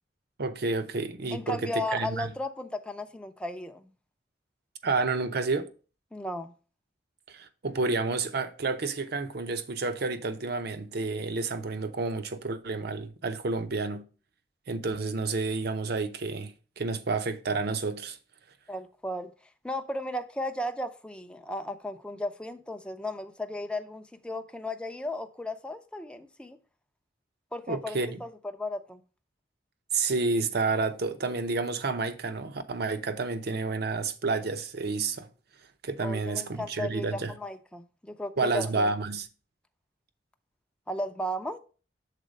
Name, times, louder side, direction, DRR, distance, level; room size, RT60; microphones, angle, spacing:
voice 1, 0.4-2.3 4.8-5.7 7.3-14.1 14.7-18.2 27.7-28.2 29.9-35.3 35.8-37.3 38.4-39.3, right 3 dB, 60° right, 0.7 m, -30 dB
voice 2, 1.3-3.9 6.1-6.5 18.7-19.3 19.6-26.6 27.5-29.0 36.0-38.9 40.9-41.6, left 1 dB, 5° left, 0.5 m, -35 dB
6.6 x 4.0 x 5.1 m
head